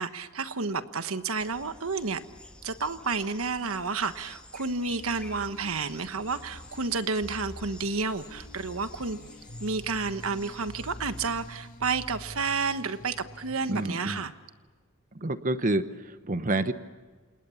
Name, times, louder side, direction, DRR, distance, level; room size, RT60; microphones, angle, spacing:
voice 1, 0.0-2.2 2.6-9.2 9.6-14.3, right 4 dB, 80° right, 10 dB, 1.3 m, -31 dB
sound 1, 1.4-11.6, left 1 dB, 5° left, 1.9 m, -50 dB
sound 2, 4.9-14.1, left 1 dB, 45° left, 5.8 m, -47 dB
voice 2, 13.7-14.2 15.1-16.7, right 2 dB, 40° right, 10 dB, 1.0 m, -28 dB
29.0 x 27.5 x 7.2 m, 1.4 s
head